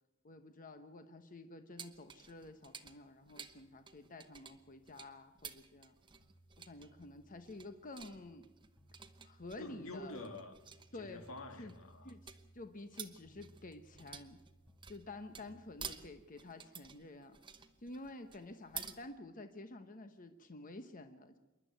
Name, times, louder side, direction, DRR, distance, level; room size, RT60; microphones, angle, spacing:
voice 1, 0.2-6.0 6.6-8.5 9.2-10.1 10.9-11.2 11.6-11.7 12.0-14.4 14.9-17.4 17.8-21.4, left 2 dB, 40° left, 1.0 m, -50 dB
sound 1, 1.8-19.0, right 7 dB, 25° right, 1.1 m, -52 dB
sound 2, 3.4-15.6, right 1 dB, 5° right, 3.6 m, -66 dB
voice 2, 9.6-10.6 10.9-12.1, left 2 dB, 80° left, 2.0 m, -47 dB
27.0 x 11.5 x 9.2 m
head